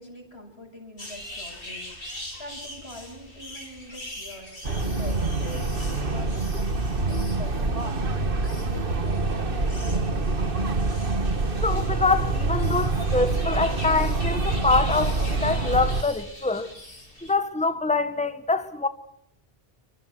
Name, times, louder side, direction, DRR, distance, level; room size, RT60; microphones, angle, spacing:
voice 1, 0.0-6.6 7.1-10.1, left 1 dB, 90° left, 8.3 m, -44 dB
sound 1, 1.0-17.3, left 1 dB, 60° left, 5.0 m, -42 dB
sound 2, 4.6-16.0, right 3 dB, 60° right, 1.8 m, -26 dB
voice 2, 11.6-16.7 17.3-18.9, left 3 dB, 5° left, 1.5 m, -25 dB
28.0 x 24.5 x 6.2 m
omnidirectional pair, 1.0 m